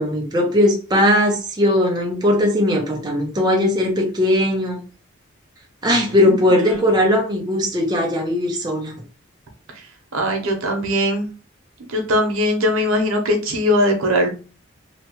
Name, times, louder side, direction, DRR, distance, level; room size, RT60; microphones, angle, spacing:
voice 1, 0.0-4.8 5.8-8.9, left 1 dB, 20° right, 0.5 m, -18 dB
voice 2, 10.1-11.3 11.8-14.3, left 1 dB, 90° right, 0.8 m, -20 dB
2.9 x 2.1 x 2.9 m
head